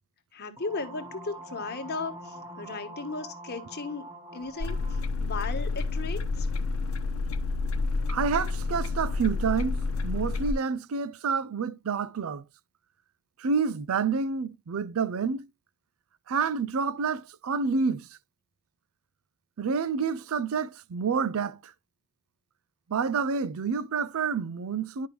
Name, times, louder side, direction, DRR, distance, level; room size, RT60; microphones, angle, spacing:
voice 1, 0.3-4.1 4.3-4.8 5.2-6.5, left 3 dB, 50° left, 1.3 m, -36 dB
sound 1, 0.6-5.1, right 1 dB, 20° right, 1.0 m, -44 dB
sound 2, 4.6-10.5, left 3 dB, 85° left, 0.9 m, -29 dB
voice 2, 8.1-12.4 13.4-15.5 16.3-18.1 19.6-21.7 22.9-25.1, right 5 dB, 85° right, 0.4 m, -28 dB
10.5 x 5.1 x 3.0 m
head